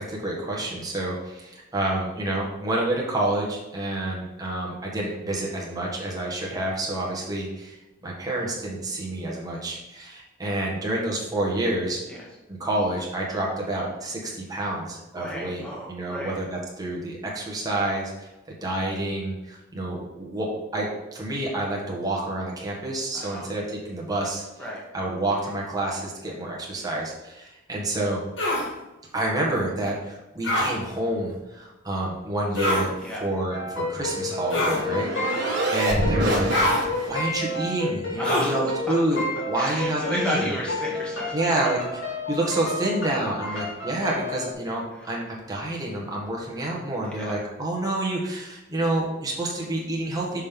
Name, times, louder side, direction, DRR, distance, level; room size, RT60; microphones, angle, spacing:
voice 1, 0.0-7.7 8.0-12.0 12.5-15.6 15.9-24.4 24.9-28.2 29.1-32.9 33.2-35.1 35.7-40.5 41.3-41.8 42.3-50.4, right 1 dB, 20° right, -4 dB, 1.5 m, -28 dB
voice 2, 15.1-16.4 23.1-23.5 24.6-24.8 33.0-33.2 35.3-35.6 38.2-38.7 39.5-41.4 43.5-43.6 44.9-45.1 47.0-47.4, equal, 5° left, -4 dB, 1.6 m, -33 dB
sound 1, 28.4-28.7 30.4-30.7 32.5-32.9 34.5-34.8 36.5-36.8 38.2-38.6, left 1 dB, 65° left, 1.6 m, -24 dB
sound 2, 33.5-44.5, left 2 dB, 85° left, 1.9 m, -31 dB
sound 3, 33.7-37.3, right 1 dB, 60° right, 1.7 m, -28 dB
6.4 x 5.5 x 3.7 m, 1.0 s
head